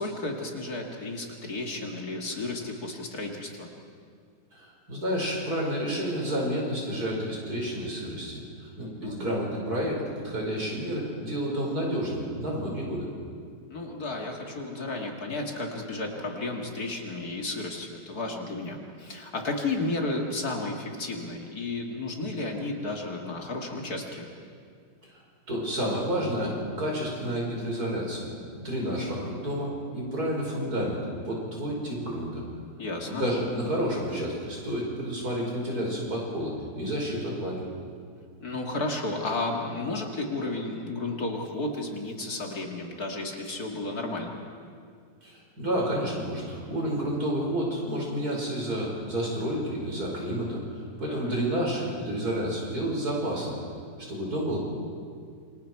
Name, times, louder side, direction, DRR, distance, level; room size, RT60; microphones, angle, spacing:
voice 1, 0.0-3.7 9.0-9.2 13.7-24.2 32.8-33.3 38.4-44.4 51.1-51.3, left 2 dB, 55° left, 1 dB, 2.5 m, -33 dB
voice 2, 4.5-13.1 25.1-25.2 25.5-28.3 28.5-31.0 31.3-32.4 33.1-37.6 45.2-50.6 51.0-53.6 54.1-54.6, equal, 55° right, -3 dB, 5.9 m, -30 dB
28.0 x 25.0 x 4.7 m, 2.2 s
omnidirectional pair, 2.0 m